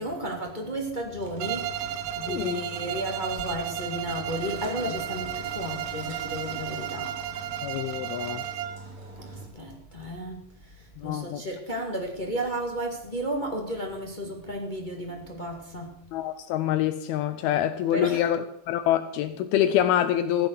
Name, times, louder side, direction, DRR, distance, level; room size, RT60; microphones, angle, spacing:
voice 1, 0.0-7.2 9.2-16.0 17.9-18.2, equal, 20° left, 1 dB, 1.5 m, -33 dB
sound 1, 1.2-9.5, right 2 dB, 50° right, 5.4 m, -44 dB
Bowed string instrument, 1.4-8.9, right 11 dB, 90° right, 2.9 m, -34 dB
voice 2, 2.3-2.6 7.6-8.4 11.0-11.4 16.1-18.4 18.7-20.5, left 11 dB, 80° left, 10 dB, 2.6 m, -25 dB
15.5 x 7.9 x 8.3 m, 0.76 s
omnidirectional pair, 4.5 m